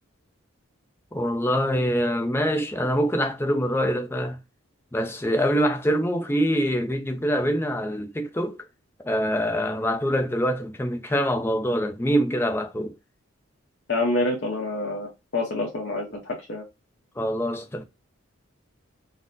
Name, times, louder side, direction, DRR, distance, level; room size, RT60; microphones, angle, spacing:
voice 1, 1.1-4.4 4.9-8.6 9.0-12.9 17.2-17.8, equal, 10° left, 0.4 m, -24 dB
voice 2, 13.9-16.6, left 2 dB, 55° left, 0.8 m, -27 dB
4.1 x 2.0 x 2.6 m
head